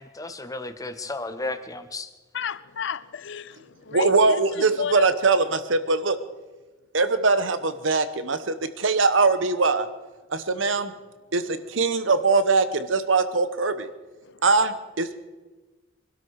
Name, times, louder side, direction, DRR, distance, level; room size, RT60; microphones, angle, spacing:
voice 1, 0.0-2.1, left 2 dB, 20° left, 1.0 m, -33 dB
voice 2, 2.3-5.1 14.2-14.4, left 7 dB, 65° left, 0.6 m, -33 dB
voice 3, 3.9-6.2 6.9-9.9 10.3-10.9 11.3-13.9 14.4-15.2, right 3 dB, 70° right, 1.1 m, -22 dB
24.0 x 12.5 x 4.8 m
head